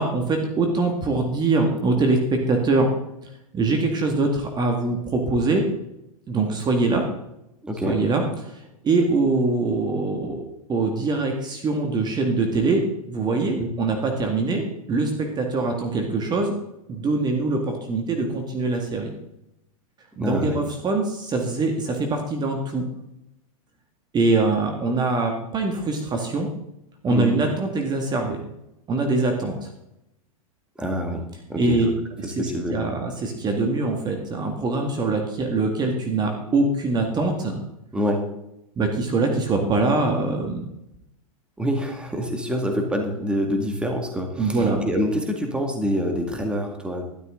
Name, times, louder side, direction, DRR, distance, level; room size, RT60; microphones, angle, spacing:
voice 1, 0.0-2.9 3.5-5.6 6.3-7.0 7.9-10.4 10.7-16.5 16.9-19.1 20.2-22.8 24.1-26.5 27.0-28.4 28.9-29.7 31.6-31.9 32.2-37.6 38.8-40.7 44.4-44.8, right 3 dB, 25° right, 3 dB, 2.0 m, -23 dB
voice 2, 7.6-8.0 13.6-13.7 20.2-20.6 27.1-27.4 30.8-31.9 32.2-32.9 37.9-38.2 41.6-47.0, equal, 5° right, 3 dB, 2.2 m, -26 dB
12.5 x 12.5 x 3.8 m, 0.85 s
hypercardioid pair, 125°, 18 cm